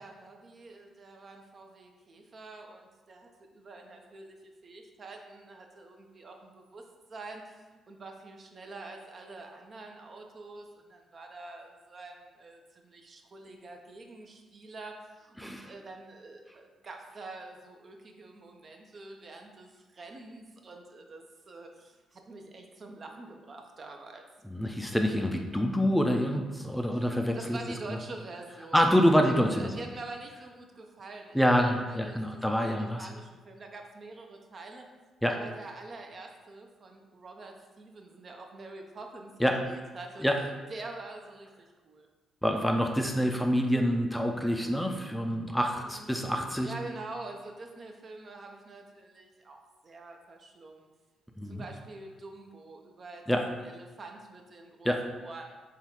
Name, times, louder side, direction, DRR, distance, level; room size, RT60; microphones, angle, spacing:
voice 1, 0.0-4.4 4.6-24.2 26.9-27.0 27.3-28.8 29.2-31.4 31.9-34.8 35.3-40.2 40.7-42.1 45.8-46.2 46.6-49.6 49.8-50.9 51.4-54.9 55.2-55.6, right 3 dB, 50° right, 3 dB, 0.6 m, -46 dB
voice 2, 15.4-15.7 24.4-27.6 27.9-28.0 28.7-29.7 31.3-33.1 35.2-35.3 39.4-39.6 40.2-40.4 42.4-46.7 51.4-51.6 53.3-53.5 54.8-55.0, equal, 5° left, 3 dB, 0.4 m, -26 dB
3.7 x 2.3 x 4.4 m, 1.3 s
supercardioid pair, 65°, 0 cm